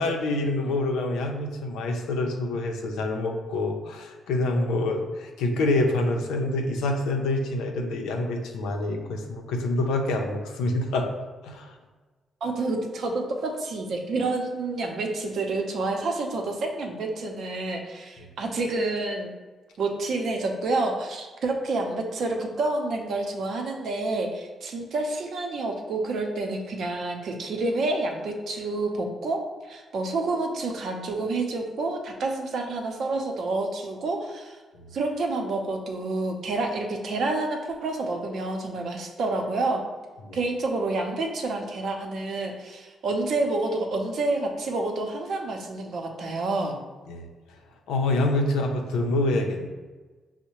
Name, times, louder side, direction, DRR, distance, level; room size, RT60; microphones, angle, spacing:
voice 1, 0.0-11.1 11.4-11.8 18.2-18.3 34.7-35.0 40.2-40.4 47.1-47.6 47.9-49.7, left 2 dB, 85° left, 3 dB, 0.5 m, -26 dB
voice 2, 12.4-19.3 19.8-34.6 34.9-39.8 40.3-46.8, right 2 dB, 70° right, 2 dB, 0.7 m, -28 dB
5.4 x 2.1 x 3.0 m, 1.3 s
supercardioid pair, 70°, 0 cm